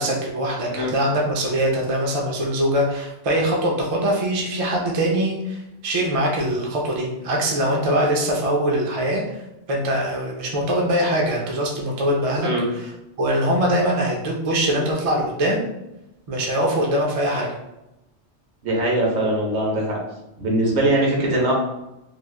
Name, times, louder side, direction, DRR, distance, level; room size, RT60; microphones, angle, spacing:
voice 1, 0.0-9.2 9.7-12.5 13.2-15.6 16.3-17.5, right 1 dB, 45° right, -1 dB, 0.4 m, -22 dB
voice 2, 18.6-20.0 20.4-21.5, right 1 dB, 70° right, -2 dB, 1.1 m, -21 dB
3.2 x 2.3 x 2.3 m, 0.91 s
omnidirectional pair, 1.2 m